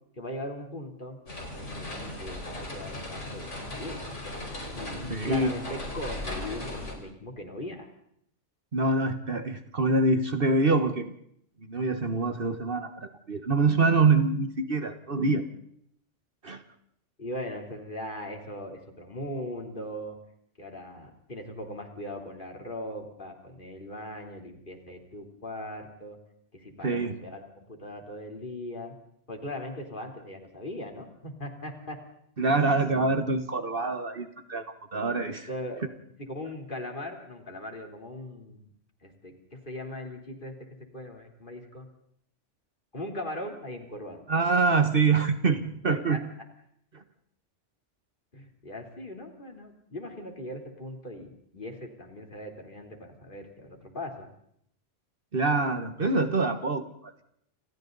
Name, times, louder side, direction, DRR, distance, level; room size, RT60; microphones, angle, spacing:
voice 1, 0.2-1.2 1.5-4.0 4.7-7.9 17.2-20.2 20.6-26.2 26.5-29.0 29.3-32.0 35.3-35.8 36.2-38.7 39.0-40.5 40.8-41.9 42.9-44.2 46.1-46.2 48.3-54.3, left 1 dB, 45° left, 3 dB, 3.7 m, -39 dB
sound 1, 1.3-6.9, left 1 dB, 75° left, 5.4 m, -37 dB
voice 2, 5.1-5.5 8.7-11.1 11.7-15.4 16.4-16.6 26.8-27.2 32.4-35.5 44.3-46.2 46.9-47.0 55.3-57.2, right 3 dB, 50° right, 8 dB, 1.5 m, -25 dB
29.5 x 27.0 x 4.0 m, 0.71 s
omnidirectional pair, 1.2 m